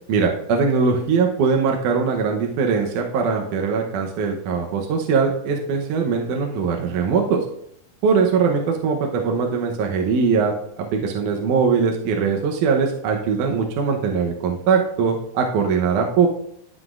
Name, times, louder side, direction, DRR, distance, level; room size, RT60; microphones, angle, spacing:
voice 1, 0.1-7.4 8.0-16.3, right 5 dB, 70° right, 2 dB, 2.1 m, -21 dB
13.0 x 5.9 x 2.4 m, 0.71 s
omnidirectional pair, 4.1 m